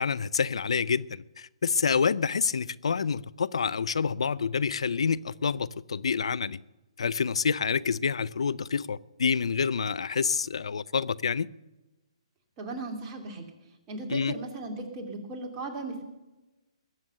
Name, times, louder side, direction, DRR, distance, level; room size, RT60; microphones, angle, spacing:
voice 1, 0.0-6.6 7.0-11.5 14.1-14.3, left 6 dB, 70° left, 0.5 m, -28 dB
voice 2, 12.6-13.4 13.9-16.0, right 2 dB, 25° right, 2.7 m, -36 dB
20.5 x 7.7 x 6.7 m
figure-of-eight pair, 135°, 3 cm